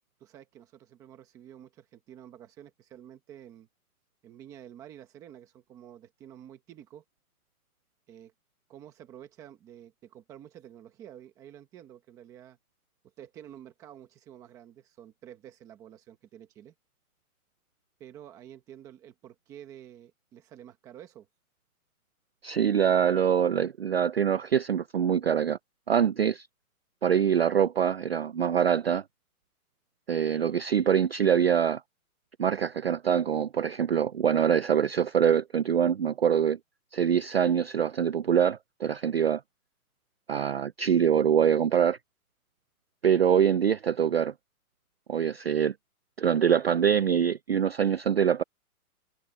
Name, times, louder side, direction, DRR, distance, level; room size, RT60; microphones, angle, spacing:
voice 1, 0.2-3.7 4.2-7.0 8.1-8.3 8.7-12.6 13.0-16.7 18.0-21.3, right 10 dB, 5° right, 1.1 m, -49 dB
voice 2, 22.4-25.6 25.9-26.5 27.0-29.0 30.1-31.8 32.4-36.6 36.9-39.4 40.3-42.0 43.0-44.3 45.1-45.7 46.2-48.4, right 8 dB, 45° right, 0.4 m, -24 dB
hypercardioid pair, 175°, 45 cm